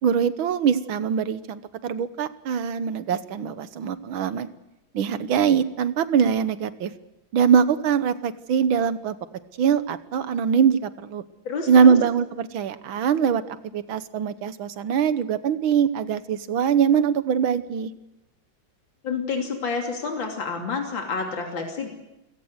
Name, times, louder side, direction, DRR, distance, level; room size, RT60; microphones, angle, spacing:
voice 1, 0.0-4.5 4.9-6.9 7.3-9.2 9.6-11.2 11.7-17.9, right 7 dB, 85° right, 13 dB, 1.9 m, -22 dB
voice 2, 11.5-12.0 19.0-21.9, left 4 dB, 70° left, 2 dB, 3.7 m, -29 dB
28.5 x 17.0 x 8.1 m, 0.94 s
omnidirectional pair, 2.2 m